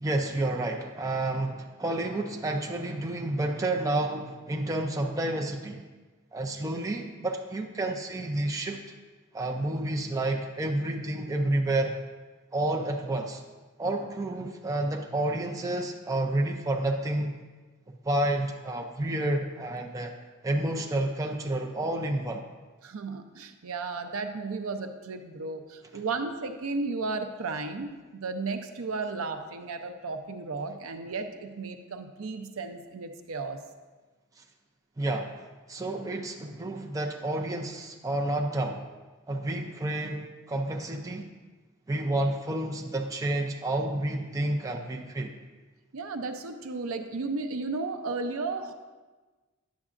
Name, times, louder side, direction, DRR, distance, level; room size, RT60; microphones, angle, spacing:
voice 1, 0.0-5.8 6.3-8.8 9.3-12.0 12.5-13.4 13.8-17.4 18.0-20.1 20.4-22.4 25.9-26.0 35.0-38.8 39.3-41.3 41.9-45.4, right 1 dB, 15° right, 2 dB, 0.4 m, -30 dB
voice 2, 22.8-33.6 45.9-48.7, right 3 dB, 65° right, 7 dB, 0.5 m, -34 dB
9.8 x 7.2 x 2.5 m, 1.3 s
head